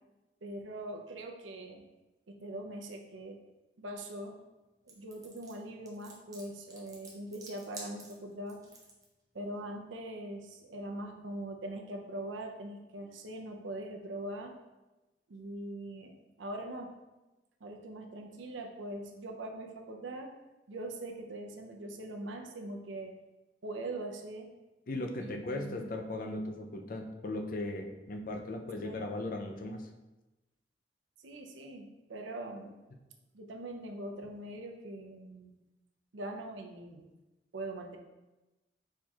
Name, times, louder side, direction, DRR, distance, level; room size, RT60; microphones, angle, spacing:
voice 1, 0.4-1.8 2.3-3.4 3.8-4.4 4.9-8.6 9.3-14.5 15.3-16.1 16.4-16.9 17.6-20.3 20.7-23.1 23.6-24.5 25.2-25.9 28.8-29.0 31.2-32.8 33.3-35.5 36.1-37.1 37.5-38.0, right 1 dB, 90° right, 3 dB, 0.6 m, -42 dB
sound 1, 4.9-9.0, right 3 dB, 20° right, 0.6 m, -50 dB
voice 2, 24.9-29.9, left 2 dB, 45° left, 3 dB, 0.4 m, -37 dB
4.5 x 4.3 x 2.3 m, 1.1 s
head